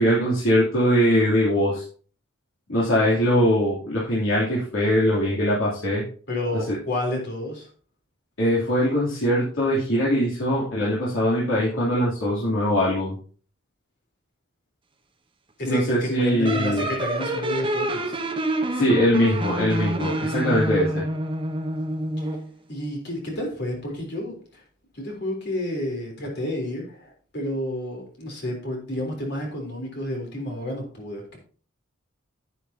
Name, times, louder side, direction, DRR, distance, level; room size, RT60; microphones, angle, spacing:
voice 1, 0.0-1.8 2.7-6.0 6.7-6.8 8.4-13.1 15.6-16.8 18.7-21.0, equal, 75° left, -8 dB, 3.2 m, -21 dB
voice 2, 6.3-7.7 15.6-18.2 22.2-22.3 22.7-24.6 24.9-31.4, left 1 dB, 55° left, 0 dB, 3.7 m, -30 dB
sound 1, 16.5-22.5, right 1 dB, 25° right, 1.0 m, -27 dB
10.0 x 9.2 x 2.9 m, 0.42 s
head